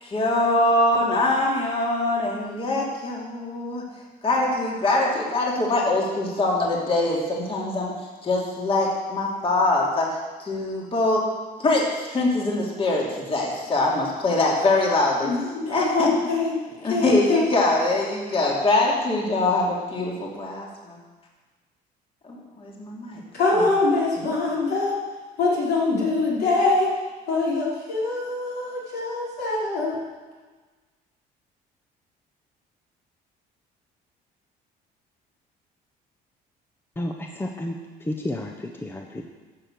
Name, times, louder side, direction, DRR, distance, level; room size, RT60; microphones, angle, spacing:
voice 1, 0.0-3.8 4.2-11.2 11.6-15.3 15.7-16.1 16.8-21.0 22.2-23.2 23.5-23.6, left 2 dB, 35° left, -3 dB, 2.8 m, -23 dB
voice 2, 15.2-17.4 23.3-24.9 25.4-26.9 27.3-30.0, left 3 dB, 75° left, -5 dB, 4.7 m, -24 dB
voice 3, 37.0-37.8 38.0-39.3, left 1 dB, 15° left, 2 dB, 1.0 m, -31 dB
12.5 x 6.6 x 7.7 m, 1.3 s
cardioid pair, 110°, 17 cm